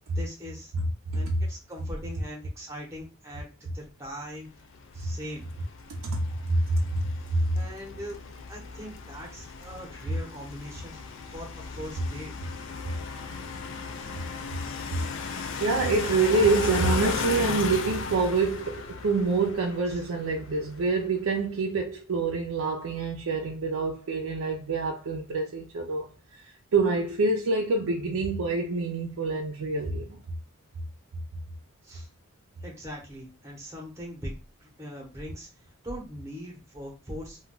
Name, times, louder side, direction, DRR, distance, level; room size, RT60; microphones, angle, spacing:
voice 1, 0.1-0.7 1.1-4.5 4.9-5.5 7.5-8.2 8.5-12.3 19.9-20.0 31.8-32.1 32.6-35.5 35.8-37.4, equal, 15° right, 0.8 m, -41 dB
sound 1, 4.7-20.9, left 5 dB, 60° left, 0.4 m, -36 dB
voice 2, 6.5-7.4 13.6-13.7 14.5-14.6 15.6-26.1 26.3-30.2, right 3 dB, 70° right, 0.4 m, -26 dB
2.2 x 2.2 x 3.7 m
head